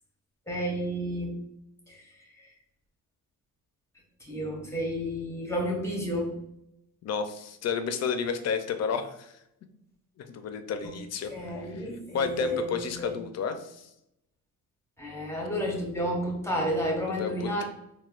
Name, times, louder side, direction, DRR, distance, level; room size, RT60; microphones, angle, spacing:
voice 1, 0.5-1.4 1.9-2.0 4.2-6.3 11.3-13.1 15.0-17.6, equal, 10° left, -2 dB, 0.9 m, -31 dB
voice 2, 7.0-9.4 10.3-11.3 11.6-11.9 12.1-13.9 17.1-17.6, left 6 dB, 50° left, 8 dB, 0.5 m, -31 dB
4.2 x 2.2 x 2.4 m, 0.80 s
cardioid pair, 100°, 34 cm